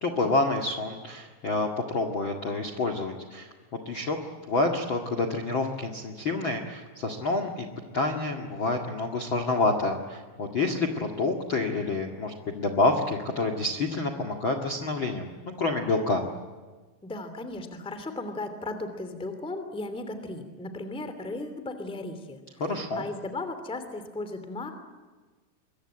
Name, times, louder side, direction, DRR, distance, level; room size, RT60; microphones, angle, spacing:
voice 1, 0.0-3.5 3.9-4.2 4.4-7.7 7.9-16.2 22.6-23.1, left 2 dB, 40° left, 6 dB, 1.8 m, -28 dB
voice 2, 17.0-22.6 22.9-24.7, left 2 dB, ahead, 9 dB, 1.8 m, -36 dB
25.5 x 23.5 x 8.9 m, 1.4 s
omnidirectional pair, 4.9 m